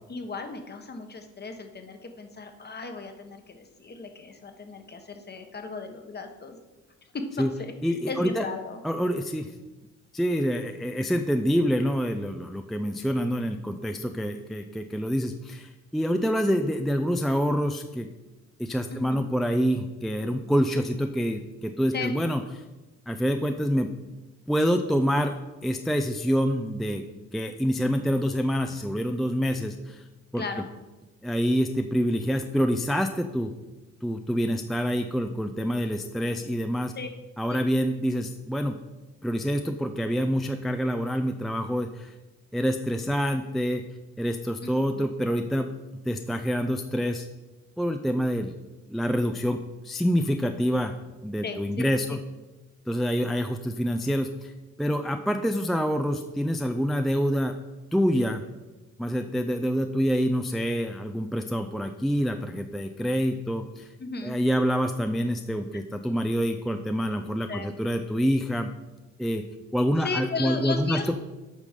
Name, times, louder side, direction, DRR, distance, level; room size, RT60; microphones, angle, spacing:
voice 1, 0.1-6.6 7.1-7.3 7.6-7.7 8.1-8.8 18.9-19.3 21.9-22.1 30.3-30.7 37.0-37.1 37.5-37.6 44.6-45.0 51.4-52.2 64.0-64.4 67.5-67.7 70.0-71.1, left 3 dB, 35° left, 6 dB, 1.1 m, -35 dB
voice 2, 7.8-8.4 8.8-9.5 10.1-18.1 18.6-22.4 23.1-23.9 24.5-25.3 25.6-27.0 27.3-30.0 30.3-30.4 31.2-33.5 34.0-36.9 37.4-38.8 39.2-42.1 42.5-43.8 44.2-45.7 46.1-47.3 47.8-48.5 48.9-50.9 51.2-52.2 52.9-57.5 57.9-58.4 59.0-63.9 64.2-68.7 69.2-69.4 69.7-71.1, equal, ahead, 6 dB, 0.4 m, -26 dB
8.4 x 5.2 x 5.1 m, 1.1 s
cardioid pair, 90°, 30 cm